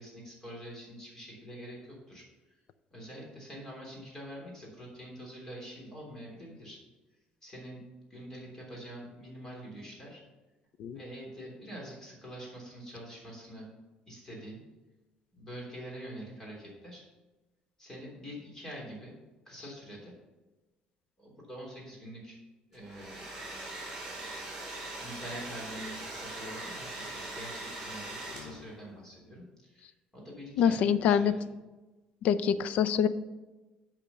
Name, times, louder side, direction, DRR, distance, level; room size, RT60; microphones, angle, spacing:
voice 1, 0.0-2.2 2.9-6.8 7.4-7.8 8.1-10.2 10.9-13.7 14.1-14.6 15.3-17.0 17.8-19.1 19.4-20.1 21.2-22.4 22.7-23.2 25.0-31.3, equal, 20° left, -2 dB, 3.2 m, -45 dB
Domestic sounds home sounds, 22.7-28.8, right 2 dB, 15° right, 3.5 m, -41 dB
voice 2, 30.6-31.3 32.2-33.1, left 8 dB, 60° left, 14 dB, 0.5 m, -25 dB
8.4 x 5.1 x 6.8 m, 1.1 s
cardioid pair, 150°, 3 cm